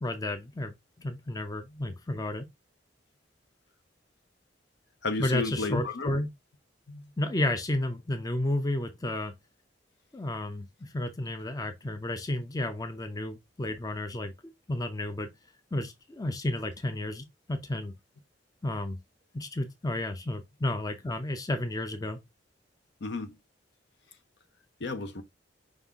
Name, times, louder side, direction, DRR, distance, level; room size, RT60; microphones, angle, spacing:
voice 1, 0.0-2.5 5.2-6.3 7.2-9.3 10.1-14.3 14.7-15.3 15.7-17.9 18.6-19.0 19.3-22.2, left 1 dB, 20° left, 0.5 m, -32 dB
voice 2, 5.0-6.1 6.9-7.0 23.0-23.4 24.8-25.2, left 3 dB, 65° left, 0.7 m, -32 dB
5.4 x 2.4 x 3.5 m
head